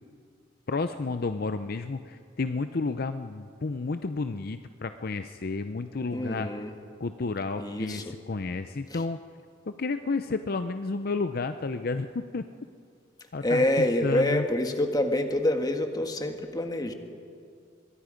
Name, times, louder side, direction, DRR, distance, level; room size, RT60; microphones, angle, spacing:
voice 1, 0.7-6.5 7.0-9.2 9.7-12.4 13.3-14.4, left 3 dB, 50° left, 9 dB, 0.6 m, -31 dB
voice 2, 6.1-6.7 7.6-8.1 8.9-9.0 13.4-16.9, left 1 dB, 20° left, 5 dB, 1.6 m, -27 dB
24.5 x 22.0 x 5.2 m, 2.3 s
head